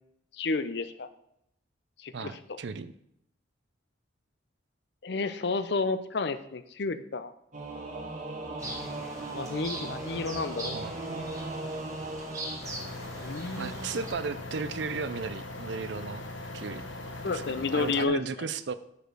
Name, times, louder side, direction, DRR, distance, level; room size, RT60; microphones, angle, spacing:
voice 1, 0.3-1.1 2.0-2.6 5.0-7.3 9.3-10.8 13.2-14.0 17.2-18.2, left 4 dB, 60° left, 12 dB, 0.6 m, -31 dB
voice 2, 2.1-2.9 10.6-10.9 13.6-16.2 16.5-16.8 17.2-17.4 17.7-18.7, right 5 dB, 65° right, 13 dB, 0.4 m, -35 dB
Singing / Musical instrument, 7.5-12.6, right 2 dB, 40° right, 1.5 m, -38 dB
sound 1, 8.6-14.1, right 1 dB, 15° right, 1.5 m, -41 dB
sound 2, 12.6-18.1, left 2 dB, 80° left, 1.1 m, -40 dB
6.6 x 5.1 x 6.1 m, 0.77 s
head